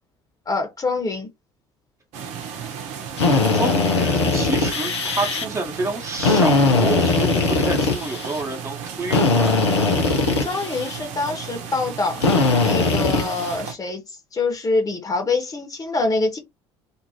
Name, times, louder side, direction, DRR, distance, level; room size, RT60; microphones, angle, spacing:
voice 1, 0.5-1.3 10.4-12.2 12.6-14.0 14.3-16.4, left 3 dB, 25° left, 1.2 m, -25 dB
sound 1, 2.1-13.7, right 7 dB, 55° right, 0.8 m, -35 dB
Drill, 3.2-5.4 6.2-8.4 9.1-11.0 12.2-13.6, left 3 dB, 75° left, 0.7 m, -20 dB
voice 2, 3.5-9.6, right 2 dB, 20° right, 1.1 m, -28 dB
2.7 x 2.5 x 2.9 m
figure-of-eight pair, 60°, 14 cm